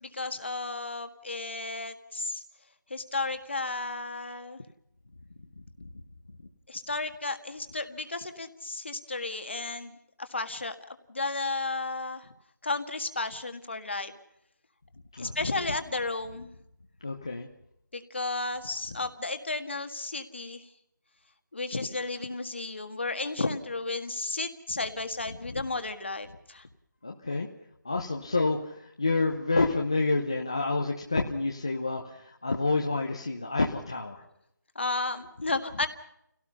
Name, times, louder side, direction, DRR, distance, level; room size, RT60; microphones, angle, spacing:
voice 1, 0.0-2.4 2.9-4.6 6.7-12.3 12.6-14.1 15.2-16.5 17.9-20.6 21.5-26.7 34.7-35.9, left 3 dB, 35° left, 8 dB, 1.7 m, -33 dB
voice 2, 15.2-15.5 17.0-17.5 27.0-27.5 27.8-34.2, left 3 dB, 15° left, 0 dB, 0.8 m, -28 dB
28.5 x 17.5 x 5.6 m, 0.75 s
figure-of-eight pair, 180°, 10 cm